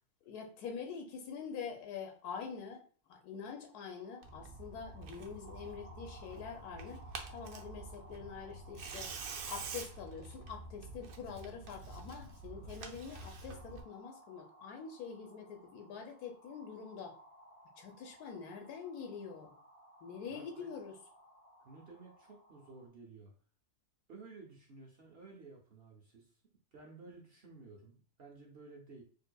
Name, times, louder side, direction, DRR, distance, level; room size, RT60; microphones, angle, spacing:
voice 1, 0.3-2.8 3.1-7.0 7.3-9.1 9.5-17.1 17.8-19.5 20.0-21.0, left 6 dB, 80° left, 3 dB, 1.2 m, -45 dB
sound 1, 3.9-22.9, equal, 45° left, 1.2 m, -60 dB
Tearing, 4.2-13.8, right 4 dB, 75° right, 1.0 m, -47 dB
voice 2, 20.3-20.7 21.6-23.3 24.1-26.3 26.7-29.0, right 3 dB, 55° right, 0 dB, 0.7 m, -54 dB
4.5 x 2.6 x 2.2 m, 0.40 s
omnidirectional pair, 1.6 m